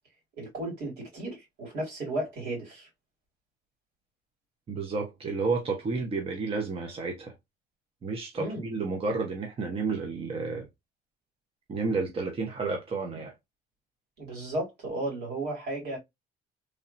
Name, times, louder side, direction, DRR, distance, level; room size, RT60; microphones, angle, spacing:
voice 1, 0.4-2.9 8.4-8.6 14.2-16.0, right 1 dB, 75° right, 2.3 m, -34 dB
voice 2, 4.7-7.3 8.0-10.7 11.7-13.3, right 4 dB, 35° right, 0.8 m, -31 dB
3.2 x 2.6 x 2.5 m
cardioid pair, 110°, 17 cm